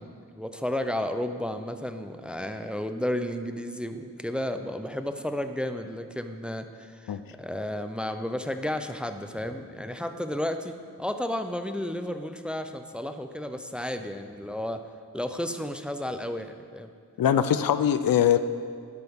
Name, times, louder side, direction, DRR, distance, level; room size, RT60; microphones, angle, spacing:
voice 1, 0.0-14.8 15.1-16.9, left 1 dB, 5° right, 8 dB, 0.5 m, -32 dB
voice 2, 17.2-18.4, left 9 dB, 85° left, 11 dB, 0.6 m, -22 dB
12.0 x 11.5 x 3.6 m, 2.2 s
wide cardioid pair, 135°, 33 cm